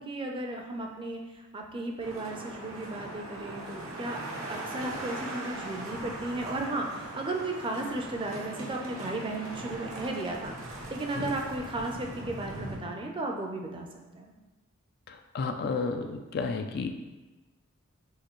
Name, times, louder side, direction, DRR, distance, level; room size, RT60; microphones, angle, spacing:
voice 1, 0.0-4.2 4.5-13.9 14.1-14.3, right 2 dB, 25° right, 2 dB, 0.5 m, -35 dB
sound 1, 2.0-12.8, right 1 dB, 85° right, 0.8 m, -40 dB
voice 2, 15.3-16.9, left 4 dB, 50° left, 6 dB, 0.3 m, -31 dB
6.4 x 2.6 x 3.0 m, 1.2 s
head